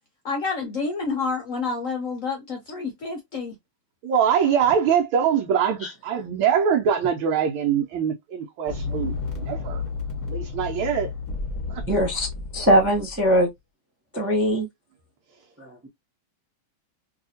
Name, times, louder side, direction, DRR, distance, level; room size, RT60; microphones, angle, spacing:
voice 1, 0.2-3.5, left 4 dB, 70° left, 0.7 m, -29 dB
voice 2, 4.0-9.1 9.4-9.8 10.3-11.1 11.7-11.8, right 8 dB, 85° right, 1.5 m, -23 dB
sound 1, 8.7-13.4, left 4 dB, 20° left, 0.9 m, -32 dB
voice 3, 11.9-12.3 12.5-13.5 14.1-14.7 15.6-15.9, equal, 20° right, 0.3 m, -21 dB
3.2 x 2.7 x 2.7 m
omnidirectional pair, 2.2 m